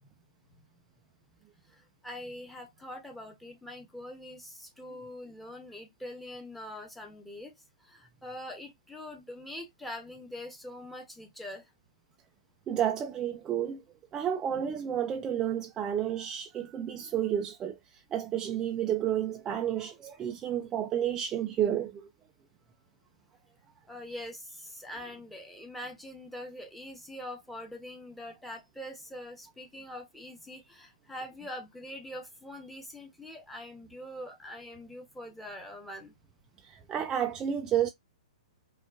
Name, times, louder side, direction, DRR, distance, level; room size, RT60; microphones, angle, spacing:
voice 1, 1.6-7.5 7.8-11.7 23.9-36.1, left 1 dB, 5° left, 1.0 m, -43 dB
voice 2, 12.7-13.8 14.1-22.1 36.6-37.9, right 10 dB, 20° right, 0.4 m, -31 dB
5.0 x 2.4 x 2.4 m
hypercardioid pair, 150°, 4 cm